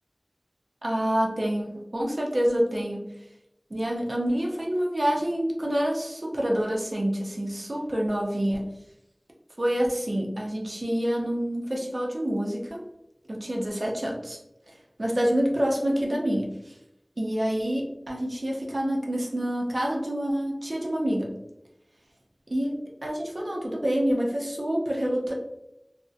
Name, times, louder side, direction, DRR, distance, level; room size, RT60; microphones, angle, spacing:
voice 1, 0.8-3.1 3.7-8.7 9.6-12.8 13.3-14.4 15.0-16.7 17.2-21.3 22.5-25.3, equal, 65° right, -2 dB, 0.5 m, -27 dB
2.6 x 2.0 x 2.4 m, 0.87 s
wide cardioid pair, 45°, 0 cm